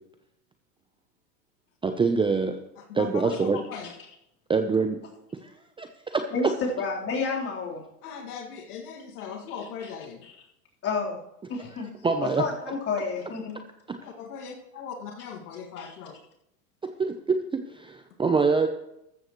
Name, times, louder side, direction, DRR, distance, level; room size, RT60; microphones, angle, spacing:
voice 1, 1.8-2.6 2.9-3.6 4.5-5.0 5.4-5.5 5.8-6.2 12.0-12.4 13.9-14.0 16.8-18.7, right 4 dB, 10° right, 7 dB, 0.7 m, -25 dB
voice 2, 2.8-3.9 8.0-10.2 14.0-16.2, left 6 dB, 70° left, 4 dB, 2.1 m, -39 dB
voice 3, 6.3-7.8 9.8-9.9 10.8-11.2 11.5-11.9 12.2-13.6 15.8-15.9, left 4 dB, 30° left, -3 dB, 3.9 m, -30 dB
14.0 x 13.5 x 3.1 m, 0.82 s
hypercardioid pair, 110°, 46 cm